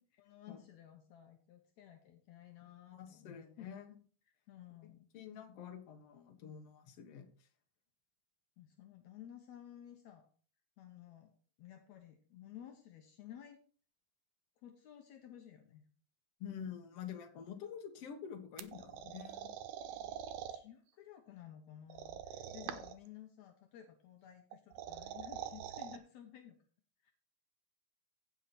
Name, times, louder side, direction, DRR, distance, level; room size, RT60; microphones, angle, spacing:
voice 1, 0.2-3.7 4.5-5.1 8.6-10.3 10.8-11.3 11.6-13.6 14.6-15.9 20.5-26.6 27.0-27.1, left 10 dB, 80° left, 4 dB, 1.6 m, -54 dB
voice 2, 2.9-3.9 5.1-7.5 16.4-19.5 22.6-22.7, left 8 dB, 60° left, 5 dB, 1.7 m, -48 dB
sound 1, 18.6-20.6 21.9-23.1 24.5-26.0, right 10 dB, 80° right, 1.9 m, -45 dB
16.0 x 5.6 x 4.2 m, 0.43 s
omnidirectional pair, 4.6 m